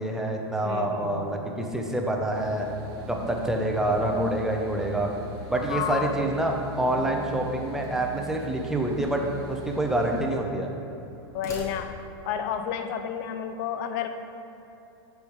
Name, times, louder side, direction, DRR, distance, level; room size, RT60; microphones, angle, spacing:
voice 1, 0.0-2.7 3.1-5.1 5.5-10.7, right 1 dB, 5° right, 1 dB, 0.6 m, -27 dB
voice 2, 0.6-1.4 5.6-6.1 11.3-12.0 12.2-14.1, left 8 dB, 50° left, 8 dB, 0.5 m, -31 dB
sound 1, 2.3-10.2, left 1 dB, 60° right, 1.1 m, -41 dB
sound 2, 7.8-8.6 9.5-10.6 11.2-12.3, left 1 dB, 20° left, 1.0 m, -45 dB
7.0 x 3.4 x 4.6 m, 2.9 s
hypercardioid pair, 120°, 14 cm